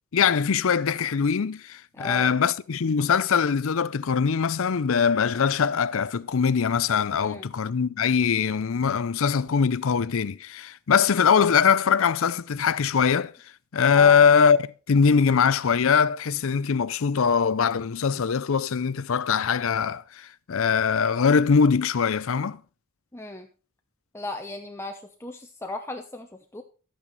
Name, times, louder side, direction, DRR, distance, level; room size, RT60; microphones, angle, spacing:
voice 1, 0.1-13.3 13.7-22.6, left 6 dB, 60° left, 0.5 m, -22 dB
voice 2, 1.9-2.3 7.2-7.5 14.0-14.2 23.1-23.5 24.1-26.6, left 2 dB, 10° left, 0.7 m, -36 dB
12.5 x 8.9 x 4.0 m
head